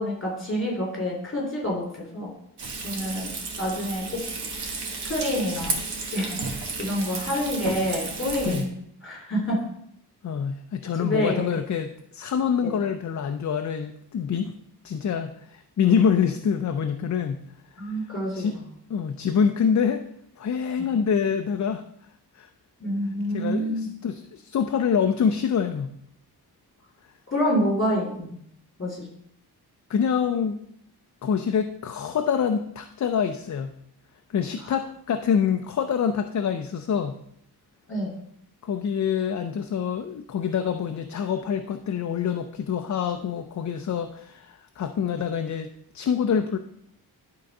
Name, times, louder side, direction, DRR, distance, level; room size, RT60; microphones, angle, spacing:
voice 1, 0.0-2.3 2.8-4.2 4.6-4.7 5.0-5.8 6.1-8.7 9.0-9.6 11.0-11.4 12.6-12.7 17.8-18.6 20.8-20.9 22.8-23.9 27.3-28.3 28.8-29.0 37.9-38.1, equal, 30° left, -1 dB, 3.2 m, -27 dB
Frying (food), 2.6-8.6, right 4 dB, 80° right, 1.5 m, -33 dB
voice 2, 10.2-14.6 14.8-17.4 18.3-18.6 18.9-20.0 20.4-21.8 22.3-22.5 23.3-25.9 29.9-30.6 31.2-33.7 34.3-37.2 38.6-45.7 45.9-46.6, left 7 dB, 45° left, 7 dB, 0.5 m, -26 dB
11.0 x 3.8 x 5.3 m, 0.71 s
wide cardioid pair, 150°, 39 cm